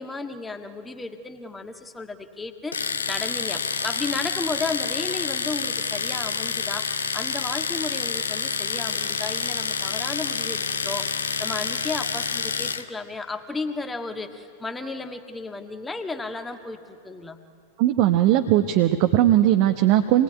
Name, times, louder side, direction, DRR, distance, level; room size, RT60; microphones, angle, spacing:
voice 1, 0.0-11.1 11.4-17.4, left 3 dB, 10° left, 6 dB, 1.6 m, -33 dB
Domestic sounds home sounds, 2.7-12.9, left 5 dB, 70° left, 0.9 m, -28 dB
voice 2, 17.8-20.2, right 13 dB, 45° right, 6 dB, 0.9 m, -19 dB
26.5 x 20.5 x 9.7 m, 2.4 s
figure-of-eight pair, 90°, 0 cm